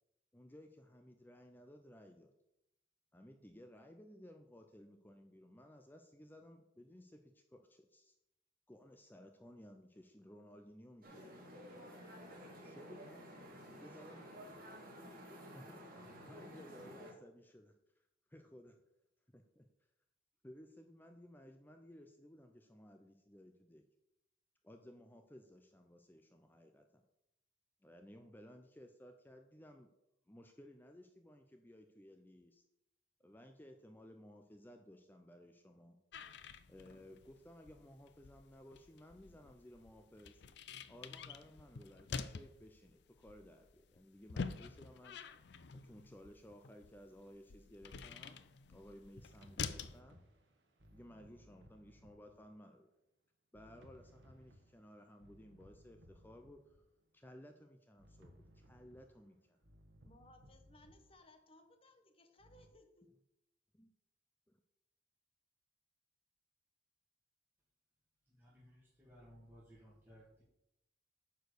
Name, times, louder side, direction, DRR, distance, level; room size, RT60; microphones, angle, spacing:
voice 1, 0.3-2.3 3.1-8.1 8.7-11.3 12.6-13.3 13.7-14.8 15.3-15.9 16.1-17.8 18.3-18.8 19.3-19.7 20.4-23.8 24.6-27.0 27.8-29.9 30.3-32.6 33.2-36.0 36.7-40.4 40.9-45.2 45.7-48.4 48.7-50.2 50.9-52.9 53.5-56.8 57.1-59.6 63.8-63.9 64.5-64.6, equal, 10° left, 5 dB, 0.5 m, -58 dB
sound 1, 11.0-17.1, equal, 50° right, 2.1 m, -53 dB
sound 2, 36.1-50.0, left 5 dB, 60° left, 0.5 m, -48 dB
sound 3, 48.1-48.3 49.1-52.6 53.5-56.9 58.0-61.2 62.4-62.7, equal, 70° right, 1.4 m, -63 dB
voice 2, 60.0-63.1, left 1 dB, 30° left, 6 dB, 1.1 m, -64 dB
voice 3, 68.2-70.4, equal, 10° right, -7 dB, 2.2 m, -60 dB
9.3 x 4.6 x 6.6 m, 0.84 s
head